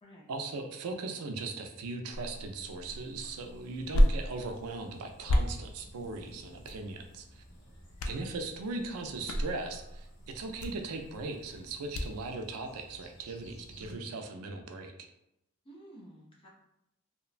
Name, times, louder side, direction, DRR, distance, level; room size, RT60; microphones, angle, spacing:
voice 1, 0.3-7.4 8.1-14.9, right 3 dB, 90° right, 5 dB, 0.4 m, -39 dB
sound 1, 2.1-12.3, equal, 75° left, 0.3 m, -33 dB
sound 2, 2.8-13.9, equal, 60° left, 1.1 m, -56 dB
voice 2, 8.0-8.4 15.6-16.5, right 1 dB, 25° left, -4 dB, 0.5 m, -53 dB
2.9 x 2.1 x 2.4 m, 0.84 s
head